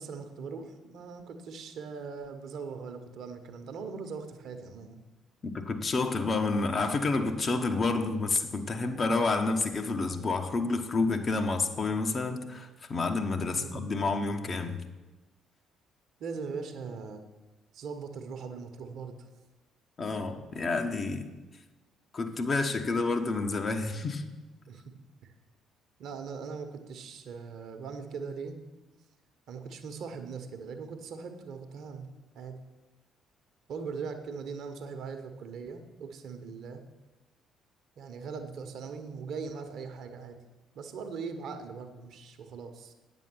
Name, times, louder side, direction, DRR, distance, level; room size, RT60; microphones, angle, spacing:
voice 1, 0.0-5.0 13.6-13.8 16.2-17.2 17.7-19.1 24.7-24.8 25.2-25.3 26.0-28.6 29.5-32.1 32.3-32.6 33.7-36.8 38.0-40.4 40.7-42.9, right 5 dB, 60° right, 1.0 m, -40 dB
voice 2, 5.4-14.8 20.0-21.3 22.1-24.2, left 3 dB, 40° left, 1.0 m, -29 dB
9.2 x 7.1 x 5.9 m
figure-of-eight pair, 45°, 0 cm